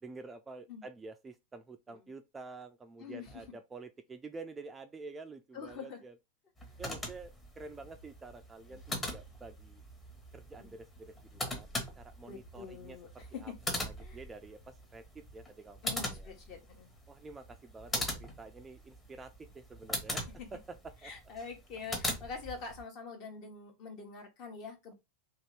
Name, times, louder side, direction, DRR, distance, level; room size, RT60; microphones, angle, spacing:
voice 1, 0.0-6.1 6.8-9.8 10.3-15.8 16.1-16.3 17.1-21.1, right 3 dB, 15° right, 0.3 m, -49 dB
voice 2, 3.0-3.5 5.5-6.0 6.6-6.8 8.7-8.8 10.6-10.8 12.3-14.2 15.8-16.9 20.4-20.5 21.0-24.9, left 5 dB, 40° left, 1.1 m, -45 dB
sound 1, 6.6-22.8, left 1 dB, 15° left, 1.0 m, -41 dB
2.9 x 2.7 x 3.1 m
figure-of-eight pair, 90°, 0 cm